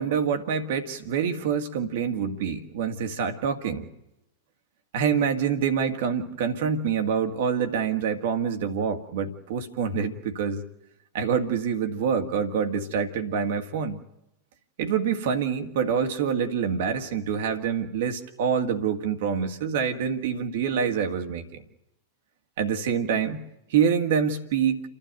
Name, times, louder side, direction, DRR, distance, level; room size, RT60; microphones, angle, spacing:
voice 1, 0.0-3.9 4.9-10.6 11.1-14.0 14.8-21.6 22.6-24.8, right 7 dB, 55° right, 7 dB, 2.0 m, -26 dB
30.0 x 12.5 x 9.2 m, 0.87 s
figure-of-eight pair, 90°, 0 cm